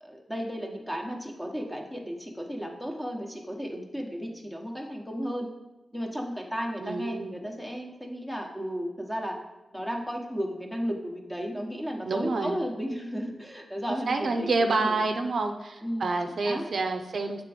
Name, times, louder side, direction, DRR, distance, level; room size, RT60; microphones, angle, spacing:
voice 1, 0.0-5.5 5.9-9.4 9.7-15.0 15.8-16.6, equal, 10° left, 1 dB, 1.0 m, -34 dB
voice 2, 6.8-7.5 12.0-12.6 14.1-17.4, right 3 dB, 65° right, 5 dB, 0.6 m, -28 dB
7.4 x 3.5 x 4.9 m, 1.1 s
wide cardioid pair, 120°, 0 cm